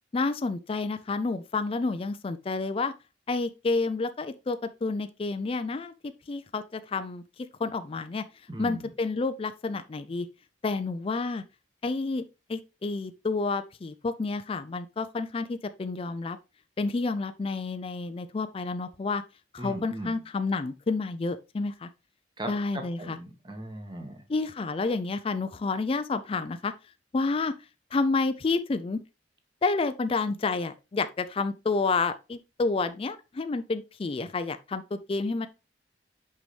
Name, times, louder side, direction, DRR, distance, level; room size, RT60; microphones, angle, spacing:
voice 1, 0.1-2.9 3.3-5.9 6.3-7.2 7.6-8.3 8.6-10.3 10.6-11.4 11.8-16.4 16.8-19.2 19.5-21.9 22.5-23.2 24.3-26.7 27.1-27.5 27.9-29.0 29.6-35.5, left 3 dB, 30° left, 0.4 m, -29 dB
voice 2, 8.5-8.9 19.6-20.2 22.4-24.2, right 1 dB, 25° right, 1.4 m, -38 dB
6.1 x 5.6 x 3.2 m
head